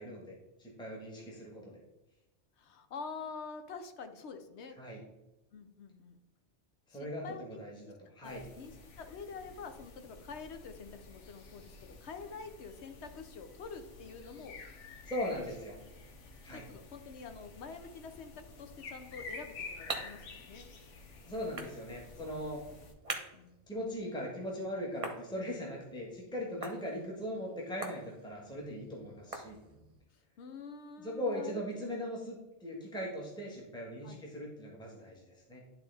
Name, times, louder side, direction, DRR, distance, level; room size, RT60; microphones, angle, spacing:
voice 1, 0.0-1.8 4.8-5.0 6.9-7.7 8.1-8.4 15.1-15.7 16.4-16.6 21.3-22.6 23.7-29.6 31.0-32.3 32.6-35.6, equal, 5° left, -3 dB, 1.4 m, -39 dB
voice 2, 2.6-4.8 5.5-6.2 6.9-7.6 8.2-14.6 15.1-15.4 16.5-20.7 23.3-23.6 26.5-26.6 30.4-31.6 31.9-32.0 34.0-34.2, left 5 dB, 70° left, 8 dB, 1.0 m, -47 dB
sound 1, 8.2-22.9, left 3 dB, 85° left, 1.2 m, -51 dB
sound 2, 19.2-30.0, right 3 dB, 35° right, 0.9 m, -47 dB
11.0 x 3.8 x 3.4 m, 0.96 s
omnidirectional pair, 1.2 m